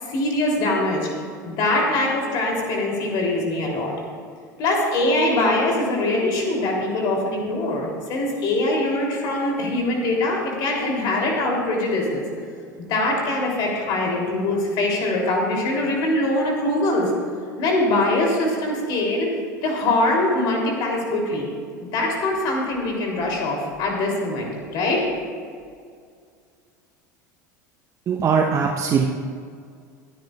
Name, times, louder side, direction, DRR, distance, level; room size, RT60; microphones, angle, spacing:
voice 1, 0.0-1.1 1.4-3.9 4.6-12.2 12.8-17.1 17.6-21.5 21.8-25.1, left 2 dB, 45° left, -1 dB, 3.1 m, -23 dB
voice 2, 28.1-29.1, right 6 dB, 30° right, 2 dB, 0.9 m, -20 dB
24.0 x 10.5 x 2.4 m, 2.1 s
figure-of-eight pair, 75°, 10 cm